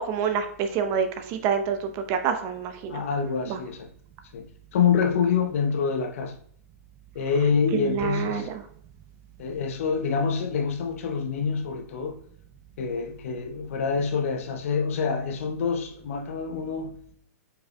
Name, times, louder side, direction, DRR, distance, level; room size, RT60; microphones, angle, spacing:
voice 1, 0.0-3.0 3.5-3.6 7.7-8.6, right 7 dB, 35° right, 0.7 m, -27 dB
voice 2, 2.9-3.9 4.3-6.3 7.1-8.5 9.4-12.2 12.8-16.9, left 6 dB, 60° left, 0.8 m, -26 dB
4.9 x 4.8 x 2.2 m
hypercardioid pair, 120°, 8 cm